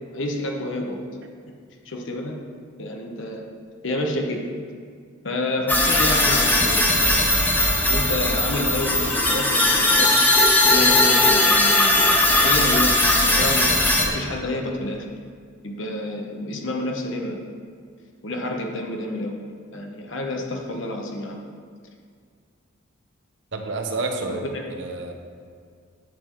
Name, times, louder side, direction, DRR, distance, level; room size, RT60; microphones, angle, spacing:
voice 1, 0.1-1.0 1.8-2.4 2.8-3.4 3.8-4.4 5.2-10.1 10.6-12.9 13.2-15.1 15.6-17.4 18.2-19.4 19.7-21.4 24.3-24.6, left 1 dB, 70° left, 2 dB, 1.0 m, -29 dB
sound 1, 5.7-14.1, left 1 dB, 10° left, 0.8 m, -18 dB
voice 2, 23.5-24.4 24.7-25.1, right 3 dB, 65° right, 4 dB, 0.9 m, -29 dB
10.5 x 7.8 x 3.1 m, 2.1 s
head